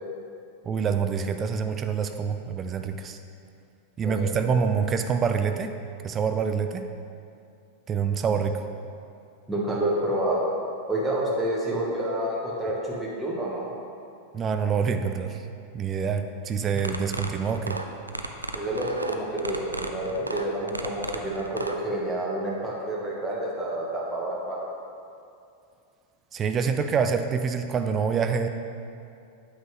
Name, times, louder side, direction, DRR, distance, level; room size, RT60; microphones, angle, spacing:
voice 1, 0.6-3.2 4.0-5.7 6.0-6.9 7.9-8.6 14.3-15.4 15.7-17.8 26.3-28.5, right 6 dB, 25° right, 7 dB, 0.4 m, -26 dB
voice 2, 4.0-4.5 9.5-10.5 10.9-13.7 18.5-24.6, right 1 dB, 5° right, -6 dB, 1.4 m, -29 dB
sound 1, 16.8-21.8, right 2 dB, 85° right, 0.5 m, -33 dB
8.9 x 8.0 x 3.3 m, 2.5 s
figure-of-eight pair, 90°, 0 cm